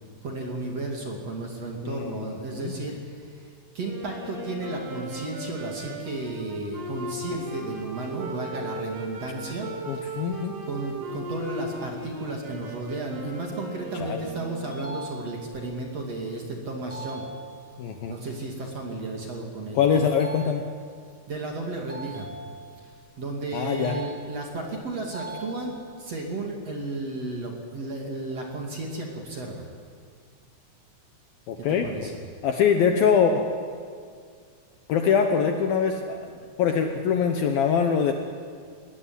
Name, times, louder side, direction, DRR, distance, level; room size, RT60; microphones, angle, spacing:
voice 1, 0.2-10.4 10.7-17.3 18.1-19.9 21.3-22.3 22.8-29.7 31.6-32.2, right 2 dB, 40° right, 0 dB, 3.0 m, -33 dB
voice 2, 1.8-2.7 5.8-5.9 7.3-7.4 9.9-10.5 14.0-14.2 17.8-18.2 19.8-20.6 23.5-24.0 31.5-31.9 32.4-33.7 34.9-36.3 36.6-38.1, left 7 dB, 70° left, 4 dB, 2.4 m, -23 dB
Wind instrument woodwind instrument, 3.8-15.0, right 1 dB, 85° right, 6.6 m, -37 dB
sound 1, 14.7-15.7 16.9-17.9 20.0-21.0 21.9-23.0 23.8-24.7 25.1-26.1, right 3 dB, 15° left, 0.5 m, -41 dB
20.5 x 19.5 x 9.8 m, 2.1 s
omnidirectional pair, 5.3 m